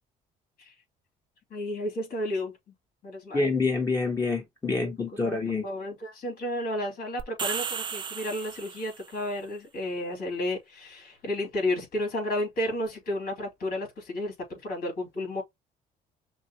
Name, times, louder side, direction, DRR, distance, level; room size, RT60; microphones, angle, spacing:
voice 1, 1.5-2.6 3.0-3.4 4.7-4.8 5.1-15.4, left 1 dB, 60° left, 2.9 m, -32 dB
voice 2, 3.3-5.7, left 3 dB, 20° left, 1.3 m, -27 dB
sound 1, 7.2-9.1, right 6 dB, 30° right, 0.5 m, -34 dB
6.1 x 2.4 x 2.9 m
cardioid pair, 110°, 17 cm